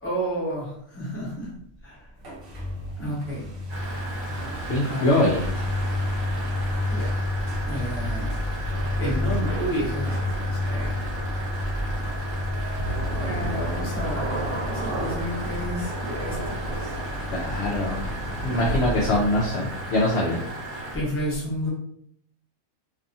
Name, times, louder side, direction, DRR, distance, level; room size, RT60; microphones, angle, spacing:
voice 1, 0.0-1.5 1.8-2.1 3.0-3.5 4.8-5.4 6.9-7.2 7.7-8.3 9.0-10.9 13.0-16.9 18.5-18.9 20.9-21.7, equal, 10° left, -6 dB, 0.7 m, -31 dB
sound 1, 2.2-20.7, left 1 dB, 55° right, 0.7 m, -31 dB
sound 2, 3.7-20.9, right 1 dB, 35° right, 1.2 m, -36 dB
voice 2, 4.7-5.4 17.3-18.0 18.4-20.4, left 1 dB, 65° left, -3 dB, 0.7 m, -23 dB
Thunder / Rain, 8.6-19.4, right 2 dB, 80° right, 1.0 m, -36 dB
2.6 x 2.4 x 2.6 m, 0.67 s
omnidirectional pair, 1.5 m